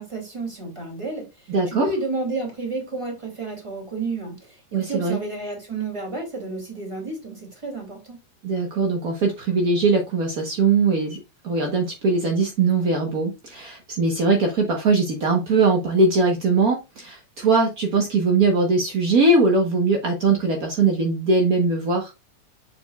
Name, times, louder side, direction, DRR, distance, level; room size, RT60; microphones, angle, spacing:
voice 1, 0.0-8.2, right 3 dB, 10° right, 2.3 m, -31 dB
voice 2, 1.5-1.9 4.7-5.2 8.4-11.2 11.4-22.1, right 3 dB, 65° right, 0.9 m, -21 dB
7.0 x 6.9 x 2.3 m
omnidirectional pair, 3.4 m